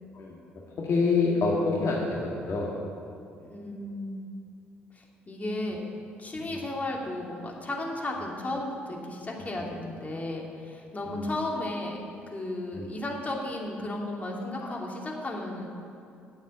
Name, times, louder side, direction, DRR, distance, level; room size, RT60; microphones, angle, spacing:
voice 1, 0.8-2.7 6.3-6.5 12.7-12.9 14.6-14.7, left 4 dB, 55° left, -3 dB, 1.9 m, -27 dB
voice 2, 3.4-4.3 4.9-5.9 6.2-12.0 12.3-15.7, left 1 dB, 25° left, -1 dB, 2.7 m, -34 dB
10.5 x 7.2 x 8.8 m, 2.5 s
hypercardioid pair, 50°, 6 cm